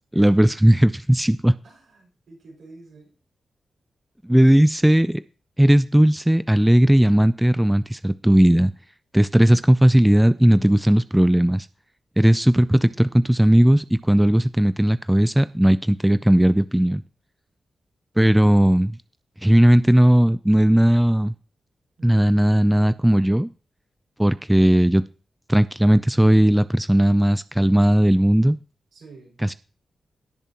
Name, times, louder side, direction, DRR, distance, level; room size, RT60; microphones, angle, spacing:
voice 1, 0.1-1.5 4.2-5.2 5.6-8.7 9.1-11.7 12.2-17.0 18.2-18.9 19.4-21.3 22.0-23.5 24.2-25.0 25.5-28.6 29.4-29.5, right 1 dB, 10° right, 0.4 m, -17 dB
voice 2, 1.6-3.2 22.0-22.2 28.9-29.4, right 3 dB, 75° right, 5.9 m, -48 dB
18.0 x 6.8 x 3.0 m
cardioid pair, 60°, 0 cm